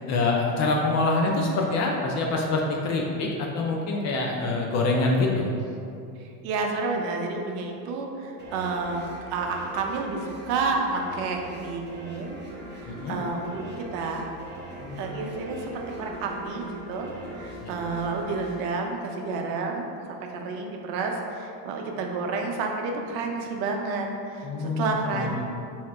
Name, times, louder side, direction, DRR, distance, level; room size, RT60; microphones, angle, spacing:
voice 1, 0.1-5.5 12.9-13.2 14.8-15.1 17.6-17.7 24.4-25.4, left 2 dB, 35° left, -1 dB, 0.4 m, -25 dB
voice 2, 6.4-12.4 12.8-14.3 15.0-17.1 17.4-25.4, right 3 dB, 60° right, 1 dB, 0.7 m, -30 dB
sound 1, 8.4-19.7, right 1 dB, 20° right, 0.7 m, -41 dB
2.9 x 2.8 x 4.4 m, 2.6 s
supercardioid pair, 105°, 49 cm